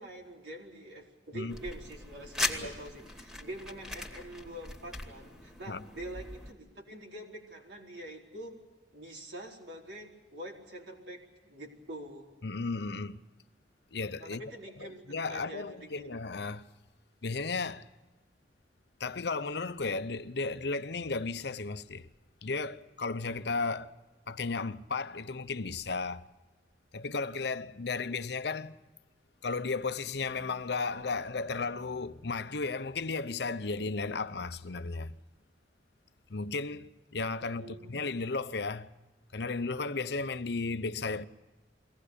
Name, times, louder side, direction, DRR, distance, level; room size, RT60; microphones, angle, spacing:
voice 1, 0.0-8.6 8.9-12.3 14.2-15.0 15.3-16.2 37.6-38.0, right 1 dB, 75° right, 4.5 m, -45 dB
sound 1, 1.5-6.5, left 2 dB, 5° right, 2.3 m, -39 dB
voice 2, 12.4-13.2 13.9-14.4 14.8-16.7 17.2-17.9 19.0-22.1 22.4-24.0 24.3-26.3 26.9-28.8 29.4-35.2 36.3-38.9 39.3-41.3, left 4 dB, 65° left, 0.8 m, -34 dB
23.0 x 18.0 x 8.4 m
head